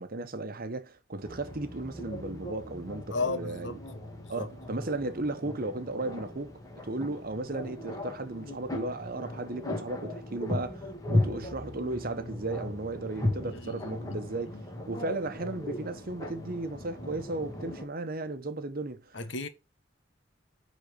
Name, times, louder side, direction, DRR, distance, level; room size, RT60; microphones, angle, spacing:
voice 1, 0.0-3.8 4.3-14.6 14.9-19.2, right 2 dB, 50° right, 1.0 m, -35 dB
sound 1, 1.2-17.9, left 1 dB, 20° left, 2.1 m, -37 dB
voice 2, 3.1-3.8 4.3-4.5 13.4-14.2 14.5-14.6 19.1-19.5, left 3 dB, 75° left, 1.3 m, -34 dB
9.1 x 4.2 x 5.2 m
head